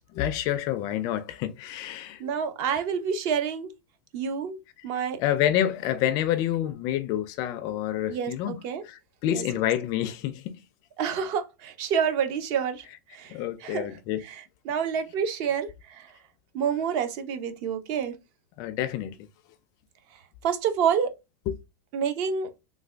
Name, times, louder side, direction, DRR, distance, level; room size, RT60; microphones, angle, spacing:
voice 1, 0.1-2.3 2.7-2.8 5.2-10.6 13.3-14.2 18.6-19.2 21.5-21.6, left 12 dB, 35° left, 0.4 m, -28 dB
voice 2, 2.2-3.7 4.1-4.6 4.8-5.2 8.1-8.8 9.3-9.4 11.0-12.8 13.1-13.9 14.2-16.1 16.5-18.1 20.4-21.1 21.9-22.5, right 7 dB, 40° right, 0.6 m, -28 dB
3.2 x 2.2 x 3.3 m
supercardioid pair, 150°, 10 cm